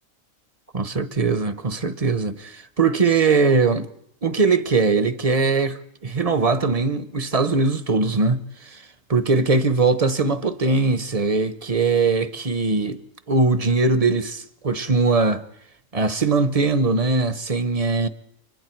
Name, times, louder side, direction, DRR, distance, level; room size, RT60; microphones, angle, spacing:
voice 1, 0.7-3.9 4.2-8.8 9.1-13.0 13.3-15.4 15.9-18.1, right 4 dB, 30° right, 0.9 m, -21 dB
30.0 x 25.0 x 4.6 m
omnidirectional pair, 1.4 m